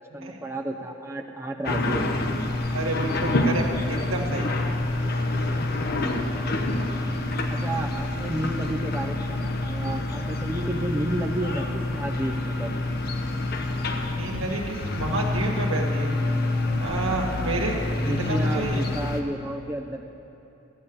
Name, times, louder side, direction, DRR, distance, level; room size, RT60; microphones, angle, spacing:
voice 1, 0.0-2.1 5.8-6.3 7.5-12.9 17.3-17.7 18.0-20.0, right 1 dB, 10° right, 3 dB, 0.7 m, -32 dB
sound 1, 1.6-19.2, left 2 dB, 50° left, 0.9 m, -27 dB
voice 2, 2.7-4.5 14.2-16.2 16.8-18.8, right 2 dB, 90° right, 0 dB, 2.0 m, -29 dB
14.0 x 8.5 x 8.7 m, 2.8 s
head